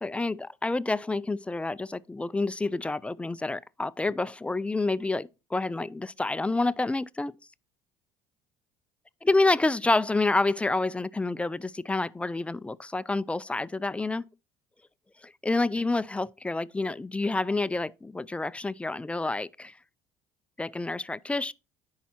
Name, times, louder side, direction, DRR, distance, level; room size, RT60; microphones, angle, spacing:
voice 1, 0.0-7.3 9.2-14.2 15.2-19.7 20.6-21.5, left 2 dB, 10° left, 0.3 m, -28 dB
10.0 x 4.7 x 4.3 m
supercardioid pair, 95°, 12 cm